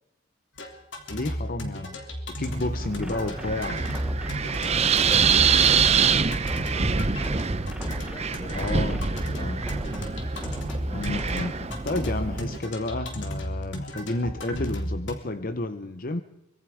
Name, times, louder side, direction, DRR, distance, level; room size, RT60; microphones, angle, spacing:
sound 1, 0.6-15.1, equal, 70° left, 3.4 m, -34 dB
voice 1, 1.1-2.0 2.4-3.9 8.5-9.0 9.4-9.6 10.9-16.2, left 2 dB, 45° left, 10 dB, 0.8 m, -31 dB
Wind, 2.5-12.6, right 6 dB, 35° right, 0.8 m, -25 dB
sound 2, 2.8-12.1, equal, 5° right, 0.8 m, -39 dB
voice 2, 4.5-7.3 7.9-10.1, left 1 dB, 25° left, 8 dB, 1.9 m, -46 dB
24.5 x 23.0 x 5.0 m, 0.88 s
head